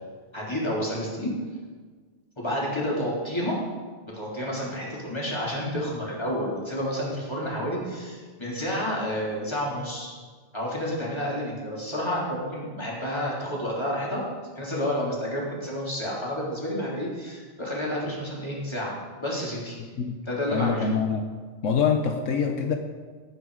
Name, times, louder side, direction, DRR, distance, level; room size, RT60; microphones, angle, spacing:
voice 1, 0.3-1.3 2.4-3.6 4.0-10.1 10.5-14.2 14.6-19.8 20.3-20.9, equal, 20° left, -5 dB, 3.6 m, -30 dB
voice 2, 20.5-21.2 21.6-22.8, left 6 dB, 80° left, 4 dB, 1.3 m, -24 dB
18.0 x 9.4 x 4.9 m, 1.5 s
omnidirectional pair, 1.3 m